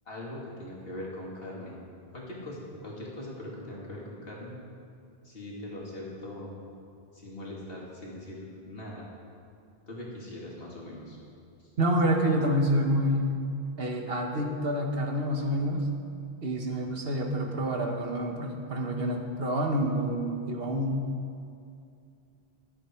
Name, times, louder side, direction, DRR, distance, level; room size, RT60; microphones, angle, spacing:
voice 1, 0.1-1.8 2.1-4.6 5.2-6.5 7.1-9.1 9.9-11.2 11.6-11.7, left 1 dB, 65° left, -4 dB, 2.9 m, -41 dB
voice 2, 11.8-13.3 13.8-15.9 16.4-21.0, equal, 65° right, 2 dB, 1.6 m, -28 dB
14.5 x 12.0 x 4.6 m, 2.4 s
omnidirectional pair, 1.1 m